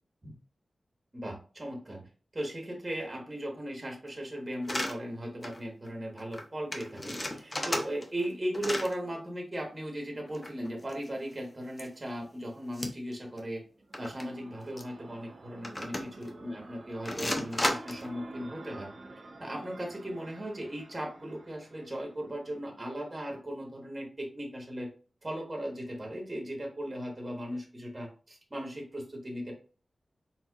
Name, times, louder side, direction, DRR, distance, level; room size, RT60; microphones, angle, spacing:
voice 1, 1.1-2.1 2.3-13.6 14.0-18.9 19.4-24.9 25.2-29.5, equal, 25° right, 0 dB, 1.4 m, -37 dB
sound 1, 4.6-4.9 5.4-5.6 5.9-6.0 6.2-6.4 6.7-8.3 8.5-8.9 10.3-11.3 11.8-11.9 12.7-13.1 13.4-13.5 13.9-14.2 14.8-14.9 15.6-16.3 17.1-18.1, left 1 dB, 20° left, 0.7 m, -34 dB
sound 2, 13.6-22.4, right 2 dB, 55° right, 0.7 m, -50 dB
4.3 x 3.9 x 2.4 m, 0.37 s
wide cardioid pair, 120°, 0 cm